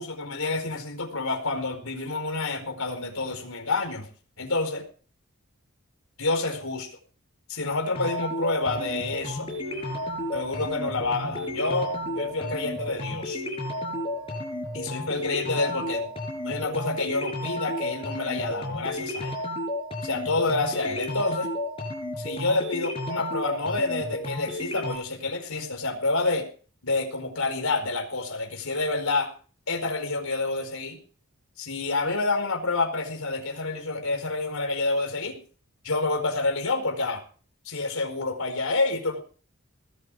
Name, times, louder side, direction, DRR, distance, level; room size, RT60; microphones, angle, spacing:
voice 1, 0.0-4.1 4.4-4.9 6.2-6.9 7.5-9.5 10.3-13.4 14.7-16.1 16.4-19.4 20.0-21.5 22.2-26.5 26.8-29.3 29.7-31.0 31.6-35.4 35.8-37.2 37.6-39.2, left 3 dB, 75° left, 5 dB, 4.8 m, -28 dB
sound 1, 7.9-24.9, left 1 dB, 25° left, 5.5 m, -32 dB
sound 2, 8.7-16.0, equal, 70° right, 4.0 m, -48 dB
19.5 x 12.0 x 4.9 m, 0.40 s
head